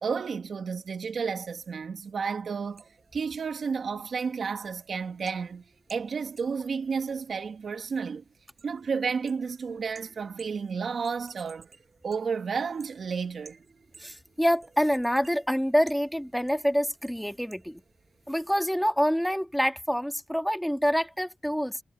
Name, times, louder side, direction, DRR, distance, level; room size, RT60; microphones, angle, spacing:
voice 1, 0.0-2.9 3.1-5.6 5.9-8.2 8.6-11.7 12.0-13.6, right 5 dB, 60° right, 1.8 m, -31 dB
sound 1, 2.6-18.6, right 4 dB, 40° right, 7.8 m, -58 dB
voice 2, 14.0-17.8 18.3-21.8, equal, ahead, 1.8 m, -26 dB
wide cardioid pair, 140°, 0 cm